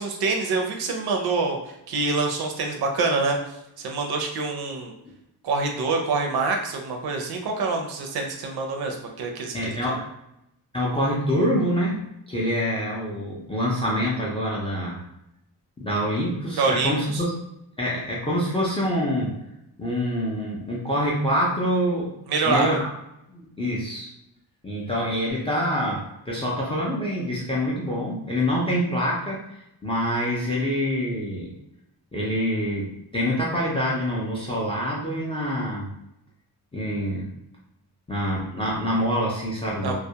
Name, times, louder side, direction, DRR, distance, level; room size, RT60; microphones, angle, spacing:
voice 1, 0.0-3.4 3.8-4.9 5.4-9.9 16.6-17.2 22.3-22.7 39.8-39.9, right 3 dB, 65° right, 2 dB, 0.5 m, -26 dB
voice 2, 9.5-10.0 10.7-12.0 12.3-15.0 15.8-17.3 17.8-19.3 19.8-22.1 22.4-22.9 23.3-24.1 24.6-29.4 29.8-31.5 32.1-35.9 36.7-37.3 38.1-39.9, equal, 15° left, -5 dB, 0.3 m, -26 dB
2.3 x 2.1 x 2.7 m, 0.84 s
wide cardioid pair, 175°, 40 cm